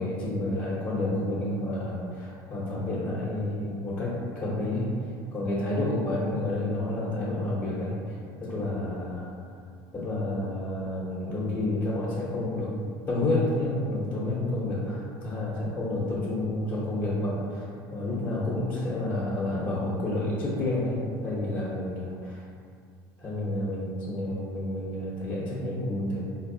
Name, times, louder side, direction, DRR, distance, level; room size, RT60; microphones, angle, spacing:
voice 1, 0.0-9.3 9.9-12.7 13.1-22.4 23.2-26.2, left 1 dB, 20° left, -9 dB, 1.0 m, -30 dB
3.9 x 2.6 x 2.7 m, 2.3 s
supercardioid pair, 100°, 11 cm